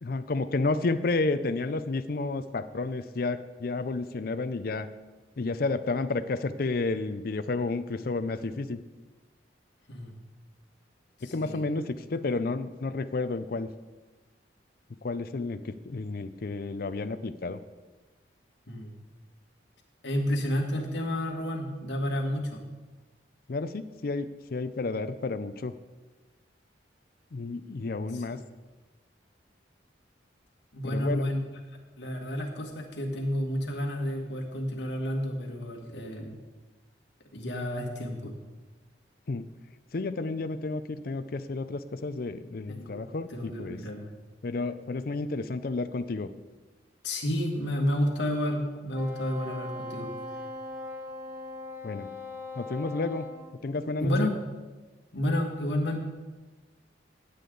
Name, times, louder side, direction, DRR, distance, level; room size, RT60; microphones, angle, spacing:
voice 1, 0.0-4.9 5.4-8.8 11.3-13.7 15.0-17.6 23.5-25.7 27.3-28.4 30.8-31.3 39.3-39.4 39.9-43.8 44.4-46.3 51.8-52.1 52.6-53.2 53.6-54.3, left 3 dB, 50° left, 11 dB, 0.5 m, -31 dB
voice 2, 11.2-11.6 18.7-18.9 20.0-22.6 28.1-28.4 30.7-31.4 32.0-36.4 37.3-38.3 42.7-43.0 43.3-44.1 47.0-50.1 54.0-54.3 55.1-56.0, left 1 dB, 70° left, 1 dB, 1.9 m, -30 dB
Wind instrument woodwind instrument, 48.9-53.4, left 2 dB, 10° right, 1.7 m, -39 dB
16.0 x 8.3 x 3.9 m, 1.2 s
head